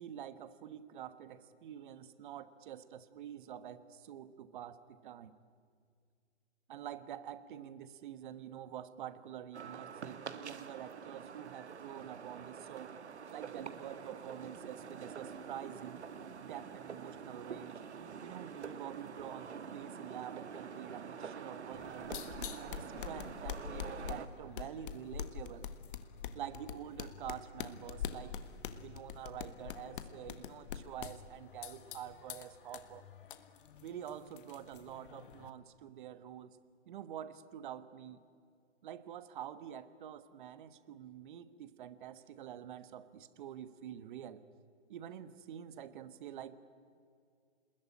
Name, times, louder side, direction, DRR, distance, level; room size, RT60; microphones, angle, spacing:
voice 1, 0.0-5.4 6.7-13.0 13.3-16.1 16.4-17.8 18.2-25.7 26.3-28.4 28.7-33.1 33.8-36.6 36.9-38.2 38.8-44.4 44.9-46.6, right 10 dB, 45° right, 14 dB, 1.3 m, -47 dB
sound 1, 9.5-24.3, right 6 dB, 70° right, 1.5 m, -46 dB
sound 2, 21.7-35.5, left 8 dB, 50° left, 1.5 m, -45 dB
26.0 x 21.0 x 10.0 m, 2.2 s
figure-of-eight pair, 130°, 35 cm